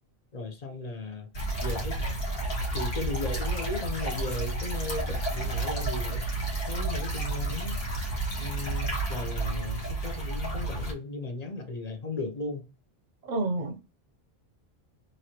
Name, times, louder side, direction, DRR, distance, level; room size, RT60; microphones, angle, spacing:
voice 1, 0.3-1.3 1.6-2.0 2.7-6.3 6.7-7.8 8.4-12.7, left 3 dB, 45° left, 0.7 m, -36 dB
sound 1, 1.3-10.9, right 2 dB, 70° left, 1.4 m, -31 dB
voice 2, 13.2-13.8, right 2 dB, 50° right, 0.6 m, -29 dB
3.1 x 2.6 x 2.8 m
omnidirectional pair, 1.0 m